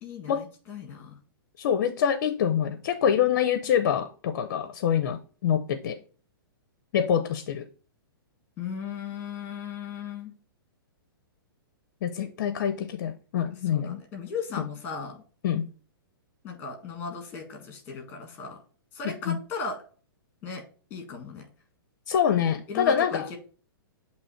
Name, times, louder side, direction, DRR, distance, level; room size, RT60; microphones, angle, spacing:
voice 1, 0.0-1.2 8.6-10.3 12.2-12.3 13.7-15.2 16.4-18.6 18.9-19.8 20.4-20.6 20.9-21.5 22.7-23.4, left 5 dB, 15° left, 1.7 m, -36 dB
voice 2, 1.6-6.0 6.9-7.7 12.0-14.0 15.4-15.7 19.0-19.4 22.1-23.3, left 8 dB, 50° left, 0.5 m, -25 dB
7.7 x 2.9 x 4.2 m
hypercardioid pair, 160°, 12 cm